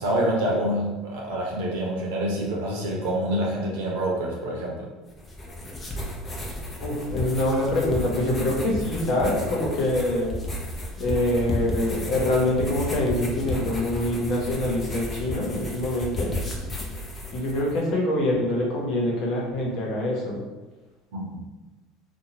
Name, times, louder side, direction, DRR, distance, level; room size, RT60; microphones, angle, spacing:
voice 1, 0.0-4.9 21.1-21.4, right 1 dB, 80° right, -2 dB, 0.7 m, -27 dB
sound 1, 5.1-17.8, left 1 dB, 25° left, 0.7 m, -33 dB
voice 2, 6.8-10.3 11.0-16.4 17.3-20.4, left 1 dB, 60° left, -3 dB, 0.9 m, -25 dB
2.7 x 2.3 x 2.8 m, 1.2 s
hypercardioid pair, 80°, 0 cm